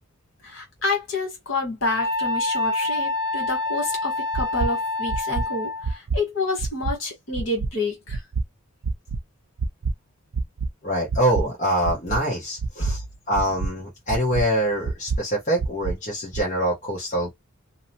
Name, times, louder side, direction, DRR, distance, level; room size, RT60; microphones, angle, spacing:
voice 1, 0.4-8.2 12.8-12.9, left 3 dB, 65° left, 1.6 m, -28 dB
Wind instrument woodwind instrument, 1.9-6.0, left 2 dB, 20° right, 0.3 m, -27 dB
sound 1, 4.3-4.7 5.1-5.4 5.8-6.2 6.6-6.9 7.3-7.7 8.1-8.4 8.8-9.2 9.6-9.9 10.3-10.7 11.1-11.4 11.8-12.2 12.6-12.9 13.3-13.7 14.1-14.4 14.8-15.2 15.6-15.9 16.3-16.4, right 4 dB, 80° right, 0.5 m, -26 dB
voice 2, 10.8-17.3, right 1 dB, 35° left, 0.9 m, -25 dB
2.7 x 2.1 x 2.7 m
head